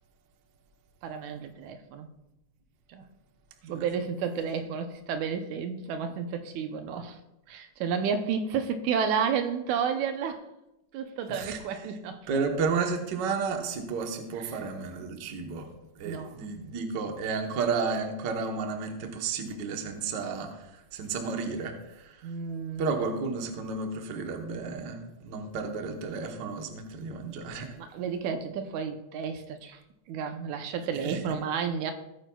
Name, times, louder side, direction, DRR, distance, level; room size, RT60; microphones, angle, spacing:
voice 1, 1.0-2.1 2.9-3.1 3.6-7.2 7.5-10.4 10.9-12.3 16.0-16.5 22.2-22.9 27.8-29.8 30.1-31.9, right 6 dB, 85° right, 7 dB, 2.2 m, -31 dB
voice 2, 11.3-11.9 12.3-15.7 15.9-22.3 22.8-27.8 30.9-31.2, right 4 dB, 55° right, 4 dB, 1.3 m, -32 dB
17.0 x 9.0 x 2.3 m, 0.92 s
omnidirectional pair, 3.3 m